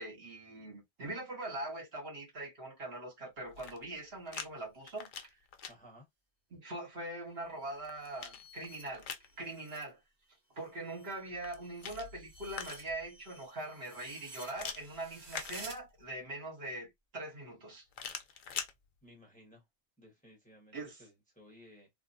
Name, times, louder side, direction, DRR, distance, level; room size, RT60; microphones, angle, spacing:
voice 1, 0.0-5.3 6.5-9.1 9.4-10.0 10.5-17.8 20.7-21.0, right 2 dB, 65° right, 1.5 m, -42 dB
sound 1, 3.4-4.5 4.8-5.7 7.4-9.3 11.3-13.1 14.5-16.1 17.9-18.7, left 6 dB, 60° left, 0.6 m, -44 dB
voice 2, 5.7-6.1 19.0-19.6 20.0-21.9, equal, 10° left, 1.1 m, -58 dB
sound 2, 7.5-9.9 10.3-15.8, right 2 dB, 45° right, 1.0 m, -53 dB
3.3 x 2.0 x 2.6 m
omnidirectional pair, 1.1 m